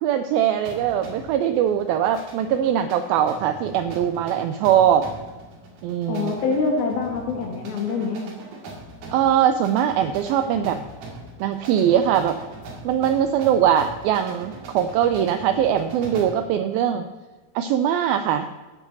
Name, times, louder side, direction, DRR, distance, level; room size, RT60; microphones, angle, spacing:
voice 1, 0.0-5.1 5.8-6.3 9.1-10.8 11.4-12.4 12.8-17.1 17.6-18.5, right 9 dB, 85° right, 9 dB, 2.1 m, -21 dB
sound 1, 0.7-16.5, right 2 dB, 70° right, 3.9 m, -41 dB
voice 2, 6.1-8.2, left 4 dB, 65° left, 1 dB, 3.5 m, -25 dB
14.5 x 9.4 x 4.1 m, 1.2 s
omnidirectional pair, 4.8 m